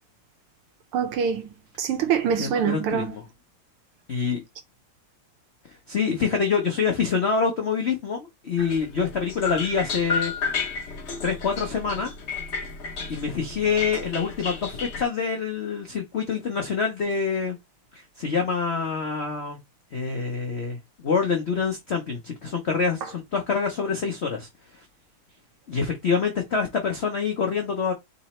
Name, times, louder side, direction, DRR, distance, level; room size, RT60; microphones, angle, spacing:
voice 1, 0.9-1.5 1.8-3.1 23.0-23.1, right 7 dB, 85° right, 1.8 m, -25 dB
voice 2, 2.4-3.2 4.1-4.4 5.9-10.3 11.2-12.1 13.1-17.6 17.9-19.6 19.9-24.5 25.7-27.9, left 5 dB, 90° left, 0.5 m, -26 dB
sound 1, 8.6-15.0, left 5 dB, 45° left, 0.9 m, -32 dB
4.0 x 2.9 x 4.2 m
omnidirectional pair, 2.4 m